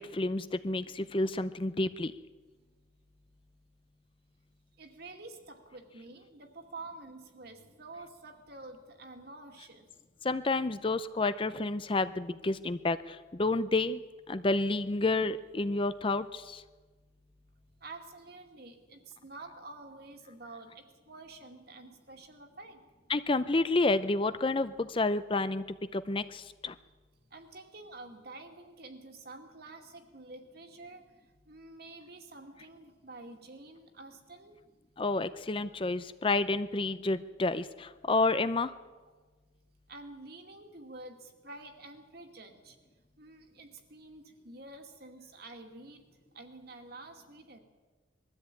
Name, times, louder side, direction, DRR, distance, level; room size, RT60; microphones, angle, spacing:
voice 1, 0.0-2.1 10.2-16.6 23.1-25.6 25.9-26.8 35.0-38.7, left 2 dB, 25° left, 13 dB, 0.5 m, -30 dB
voice 2, 4.8-9.9 17.8-22.8 27.2-34.6 39.9-42.8 43.2-47.6, right 2 dB, 50° right, 5 dB, 2.3 m, -49 dB
21.5 x 13.5 x 9.0 m, 1.4 s
head